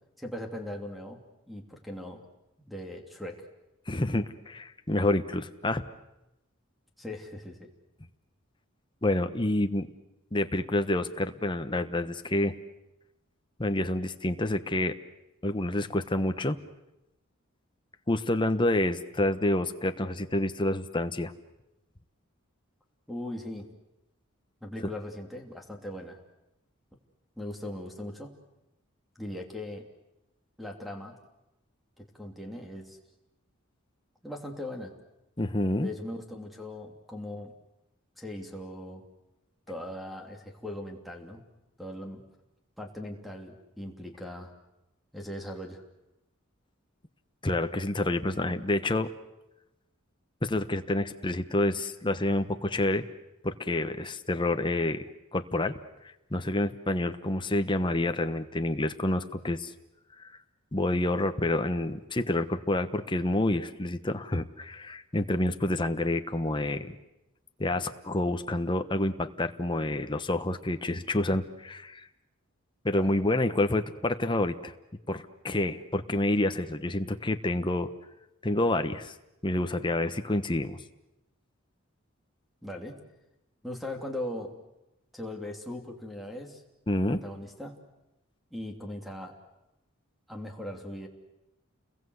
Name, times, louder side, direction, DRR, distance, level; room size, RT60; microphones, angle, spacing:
voice 1, 0.2-1.2 1.5-2.2 2.7-3.4 7.0-7.7 23.1-23.7 24.6-26.2 27.4-28.3 29.1-29.9 30.6-31.1 32.0-33.0 34.2-34.9 35.8-37.5 38.2-39.0 39.7-41.4 41.8-42.2 42.8-44.5 45.1-45.8 72.9-73.1 82.6-83.0 83.6-84.5 85.1-86.6 87.0-87.7 88.5-89.3 90.3-91.1, left 1 dB, ahead, 3 dB, 3.0 m, -39 dB
voice 2, 3.9-5.8 9.0-9.9 10.3-12.6 13.6-15.0 15.4-16.6 18.1-21.3 35.4-35.9 47.4-49.1 50.4-53.0 53.4-55.0 55.3-55.8 56.3-59.7 60.7-66.9 67.6-72.1 72.8-74.7 75.1-77.9 78.4-79.1 79.4-80.8 86.9-87.2, left 1 dB, 25° left, 8 dB, 1.1 m, -28 dB
30.0 x 21.5 x 8.1 m, 0.93 s
head